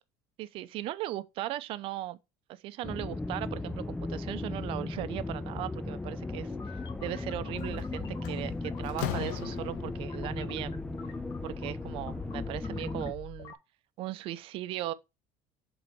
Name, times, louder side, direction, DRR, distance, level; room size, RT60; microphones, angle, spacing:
voice 1, 0.4-2.2 2.5-10.8 11.4-13.5 14.0-14.9, right 14 dB, 60° right, 0.6 m, -38 dB
sound 1, 2.8-13.1, left 2 dB, 10° left, 0.3 m, -37 dB
sound 2, 6.4-13.6, left 6 dB, 40° left, 1.3 m, -46 dB
Slam, 7.6-7.8 8.2-10.1, left 11 dB, 90° left, 0.7 m, -37 dB
6.7 x 3.9 x 4.4 m
supercardioid pair, 110°, 10 cm